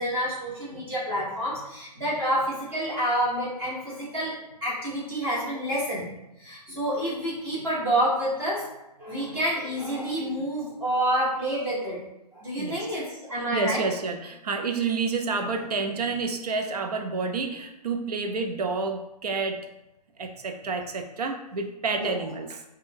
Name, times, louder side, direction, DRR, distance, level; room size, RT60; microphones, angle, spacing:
voice 1, 0.0-6.1 6.4-8.6 9.0-12.0 12.3-13.8 21.9-22.2, equal, 10° right, -7 dB, 0.5 m, -28 dB
voice 2, 13.3-19.7 20.2-22.6, right 4 dB, 65° right, 4 dB, 0.5 m, -29 dB
3.6 x 2.2 x 2.6 m, 0.90 s
hypercardioid pair, 160°, 21 cm